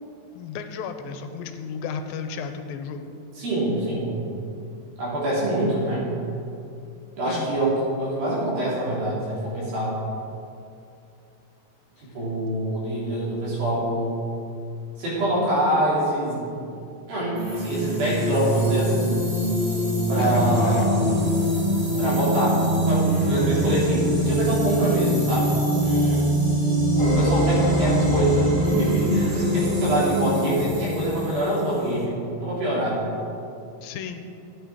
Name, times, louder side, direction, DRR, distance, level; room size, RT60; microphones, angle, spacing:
voice 1, 0.3-3.1 7.3-7.5 20.2-20.9 33.8-34.3, left 7 dB, 85° left, 7 dB, 2.4 m, -33 dB
voice 2, 3.4-4.1 5.0-6.1 7.2-10.0 12.0-14.2 15.0-16.5 17.1-19.2 20.1-21.0 22.0-26.3 27.0-33.0, right 1 dB, 75° right, -7 dB, 5.3 m, -25 dB
sound 1, 17.3-32.0, equal, 35° right, 1.0 m, -23 dB
sound 2, 27.0-31.3, left 2 dB, 35° left, 2.8 m, -30 dB
13.0 x 9.3 x 5.0 m, 2.5 s
omnidirectional pair, 4.2 m